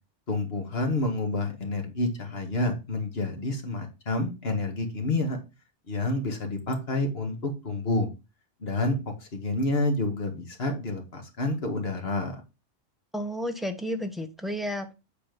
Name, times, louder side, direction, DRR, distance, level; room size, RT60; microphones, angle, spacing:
voice 1, 0.3-5.4 5.9-8.1 8.6-9.0 9.3-12.4, left 2 dB, 55° left, 4 dB, 2.0 m, -29 dB
voice 2, 13.1-14.9, equal, ahead, 7 dB, 0.9 m, -32 dB
8.7 x 4.2 x 5.2 m, 0.27 s
omnidirectional pair, 1.3 m